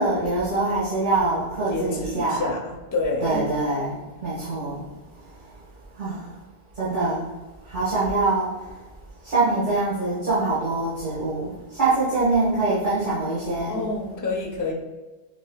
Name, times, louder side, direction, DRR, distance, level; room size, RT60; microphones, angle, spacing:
voice 1, 0.0-2.4 3.2-4.9 6.0-6.2 6.8-7.2 7.7-8.5 9.2-11.5 11.8-13.8, right 2 dB, 50° right, -11 dB, 1.4 m, -24 dB
voice 2, 1.7-3.4 13.7-14.7, left 3 dB, 20° left, 0 dB, 0.6 m, -28 dB
6.7 x 3.0 x 2.3 m, 1.2 s
omnidirectional pair, 1.1 m